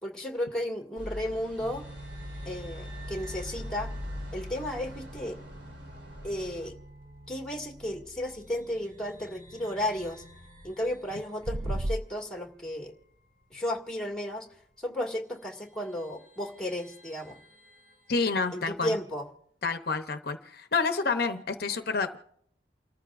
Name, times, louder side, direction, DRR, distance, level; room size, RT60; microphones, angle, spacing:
voice 1, 0.0-1.8 2.4-3.9 4.3-5.4 6.2-6.7 7.3-10.2 10.6-12.9 13.5-14.5 14.8-17.4 18.5-19.3, left 1 dB, 5° left, 0 dB, 2.0 m, -33 dB
sound 1, 1.0-6.7, left 1 dB, 85° right, 4.1 m, -42 dB
sound 2, 1.6-13.5 13.8-13.9 14.9-15.0 15.5-18.6, right 1 dB, 55° right, 7.1 m, -49 dB
sound 3, 11.4-12.0, right 1 dB, 35° right, 0.5 m, -30 dB
voice 2, 18.1-18.9 19.6-22.2, left 4 dB, 55° left, 7 dB, 0.8 m, -29 dB
29.5 x 14.0 x 2.5 m, 0.68 s
head